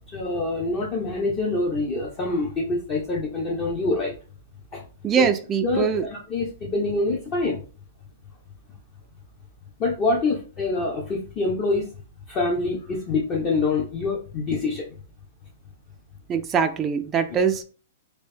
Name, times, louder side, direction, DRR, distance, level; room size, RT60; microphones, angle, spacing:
voice 1, 0.1-4.1 4.7-4.8 5.2-5.3 5.6-7.6 9.8-11.9 12.3-14.9 17.3-17.4, left 3 dB, 30° left, -2 dB, 0.7 m, -25 dB
voice 2, 5.0-6.0 16.3-17.6, right 6 dB, 20° right, 5 dB, 0.3 m, -22 dB
3.1 x 2.6 x 3.2 m, 0.38 s
hypercardioid pair, 140°, 0 cm